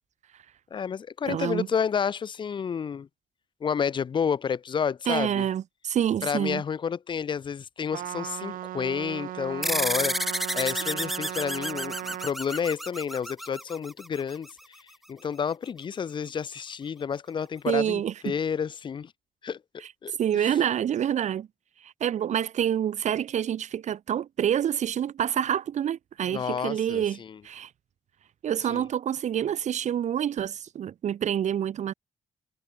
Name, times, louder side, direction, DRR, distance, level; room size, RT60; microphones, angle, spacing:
voice 1, 0.7-3.1 3.6-5.5 6.2-19.1 19.4-19.6 20.0-20.6 26.3-27.4 28.7-28.9, left 7 dB, 35° left, 0.7 m, -30 dB
voice 2, 1.3-1.7 5.1-6.6 17.7-18.3 20.1-21.5 21.8-27.2 27.4-27.7 28.4-31.9, right 9 dB, 55° right, 1.1 m, -27 dB
Trumpet, 7.9-12.3, right 13 dB, 80° right, 0.5 m, -36 dB
sound 1, 9.6-14.5, equal, ahead, 0.3 m, -31 dB
wide cardioid pair, 180°, 14 cm